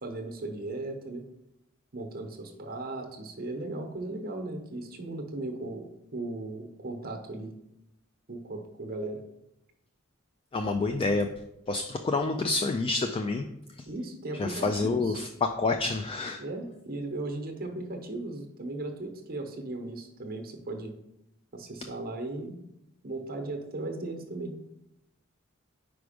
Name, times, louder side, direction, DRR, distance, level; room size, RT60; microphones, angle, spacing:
voice 1, 0.0-1.2 1.9-7.5 8.3-9.2 13.9-15.2 16.4-20.9 21.5-22.6 23.0-24.6, right 2 dB, 45° right, 3 dB, 0.9 m, -37 dB
voice 2, 10.5-11.3 11.7-13.5 14.4-16.4, left 3 dB, 25° left, 6 dB, 0.3 m, -28 dB
5.0 x 4.7 x 5.0 m, 0.85 s
head